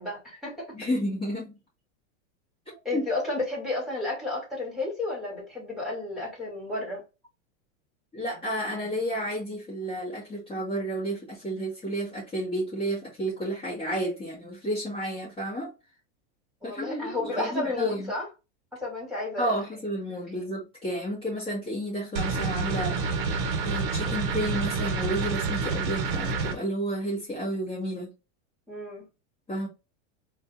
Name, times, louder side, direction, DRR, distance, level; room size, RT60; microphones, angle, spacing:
voice 1, 0.0-0.7 2.8-7.0 16.6-18.3 18.7-19.5 28.7-29.1, left 2 dB, ahead, 2.7 m, -32 dB
voice 2, 0.7-1.6 2.9-3.0 8.1-15.7 16.6-18.1 19.4-23.4 23.6-28.1 29.5-29.7, equal, 15° left, 1.9 m, -31 dB
sound 1, 22.2-26.5, right 4 dB, 50° right, 1.2 m, -28 dB
4.1 x 2.8 x 3.6 m
supercardioid pair, 145°, 35 cm